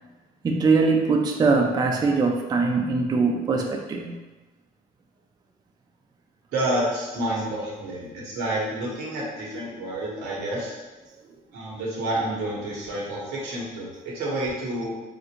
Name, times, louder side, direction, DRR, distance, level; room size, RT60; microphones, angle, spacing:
voice 1, 0.4-4.2, right 4 dB, 25° right, 1 dB, 0.3 m, -22 dB
voice 2, 6.5-10.8 11.5-14.9, right 1 dB, 85° right, -5 dB, 1.1 m, -29 dB
3.2 x 2.5 x 2.9 m, 1.2 s
cardioid pair, 110°, 17 cm